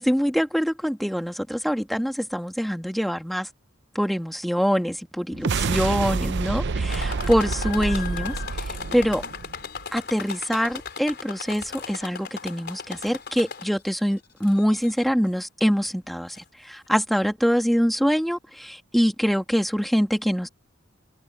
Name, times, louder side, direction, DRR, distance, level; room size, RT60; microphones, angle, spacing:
voice 1, 0.0-3.5 4.0-9.2 9.9-16.4 16.6-20.5, equal, ahead, 1.7 m, -24 dB
sound 1, 5.3-9.8, right 4 dB, 60° right, 0.6 m, -28 dB
sound 2, 6.9-13.9 14.4-15.0 15.8-15.9 16.3-16.4, left 6 dB, 55° left, 3.9 m, -37 dB
head